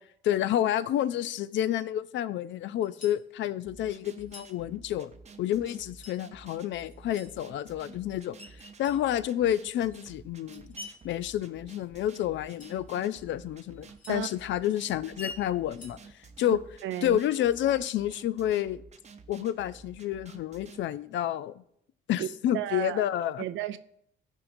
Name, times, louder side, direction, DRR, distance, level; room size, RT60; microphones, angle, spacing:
voice 1, 0.2-5.1 5.4-8.4 8.8-10.8 11.0-16.0 16.4-16.6 17.0-18.8 19.3-21.5 22.1-23.4, left 11 dB, 70° left, 0.4 m, -29 dB
sound 1, 2.8-3.3 4.2-4.6 5.7-6.2 6.9-7.4 8.6-9.1 10.5-11.0 12.3-12.8 13.7-14.2 15.5-16.1, left 2 dB, 40° left, 1.5 m, -53 dB
sound 2, 3.6-20.8, right 4 dB, 35° right, 0.6 m, -51 dB
Screech, 8.4-8.9 9.6-12.3 12.6-16.9, left 2 dB, 10° left, 0.5 m, -49 dB
voice 2, 16.8-17.2 22.2-22.3 22.5-23.0 23.4-23.8, right 13 dB, 75° right, 0.4 m, -33 dB
13.0 x 4.5 x 2.6 m
cardioid pair, 90°, 20 cm